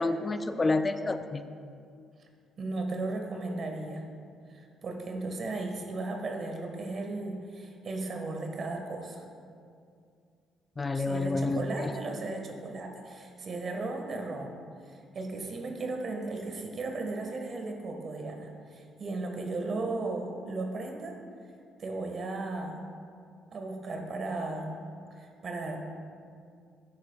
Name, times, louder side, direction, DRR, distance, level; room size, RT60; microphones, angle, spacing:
voice 1, 0.0-1.5 10.8-11.9, left 3 dB, 30° left, 10 dB, 0.5 m, -29 dB
voice 2, 2.6-4.0 4.5-9.2 10.9-14.5 14.8-21.2 21.8-22.9 23.5-24.8 25.2-25.8, right 2 dB, 50° right, 3 dB, 1.6 m, -36 dB
14.5 x 9.0 x 2.4 m, 2.3 s
hypercardioid pair, 50°, 0 cm